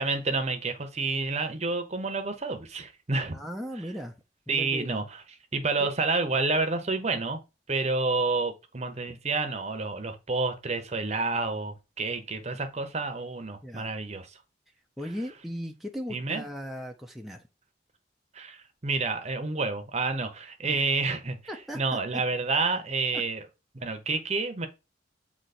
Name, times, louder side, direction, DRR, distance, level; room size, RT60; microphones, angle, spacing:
voice 1, 0.0-3.4 4.5-5.2 5.5-7.4 7.7-14.4 16.1-16.4 18.3-21.4 21.7-23.4 23.7-24.7, right 3 dB, 40° right, 0.9 m, -29 dB
voice 2, 3.3-4.1 4.5-5.0 5.8-5.9 7.1-7.2 13.6-13.9 15.0-17.4 20.6-20.8 21.5-22.2, equal, ahead, 0.7 m, -37 dB
7.9 x 3.0 x 4.2 m
head